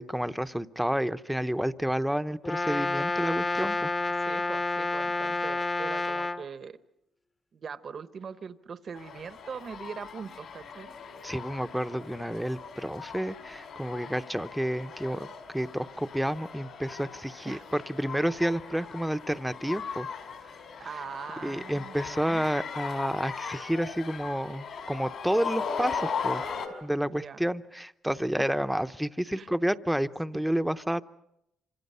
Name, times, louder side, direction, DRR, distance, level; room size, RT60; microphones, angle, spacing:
voice 1, 0.0-3.9 11.2-15.3 15.5-20.1 21.4-26.4 26.8-31.0, equal, 5° right, 11 dB, 0.8 m, -30 dB
Brass instrument, 2.4-6.4, left 3 dB, 30° left, 1.1 m, -29 dB
voice 2, 4.1-6.8 7.5-10.9 17.4-17.7 20.8-22.4 27.1-27.4 28.4-28.6 29.3-29.5, right 6 dB, 50° right, 12 dB, 1.0 m, -41 dB
sound 1, 8.9-26.7, left 6 dB, 70° left, 4.6 m, -39 dB
27.5 x 26.0 x 5.6 m, 0.81 s
cardioid pair, 90°, 0 cm